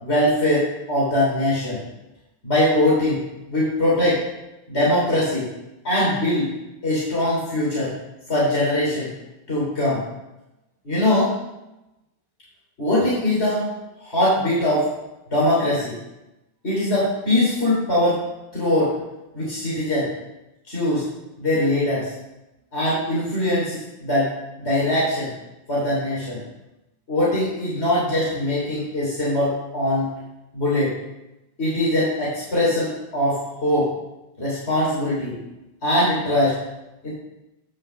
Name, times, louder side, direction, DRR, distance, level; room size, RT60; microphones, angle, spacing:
voice 1, 0.0-1.8 2.4-3.2 3.5-4.2 4.7-5.5 5.8-6.5 6.8-7.9 8.3-9.1 9.5-10.0 10.9-11.3 12.8-13.6 14.0-14.9 15.3-16.0 16.6-18.2 18.5-18.9 19.3-20.1 20.7-21.0 21.4-22.1 22.7-24.3 24.6-25.3 25.7-26.4 27.1-30.1 30.5-30.9 31.6-33.9 34.4-35.4 35.8-36.6 37.0-37.1, left 1 dB, 80° left, -7 dB, 3.5 m, -21 dB
9.8 x 5.6 x 6.6 m, 0.96 s
omnidirectional pair, 1.1 m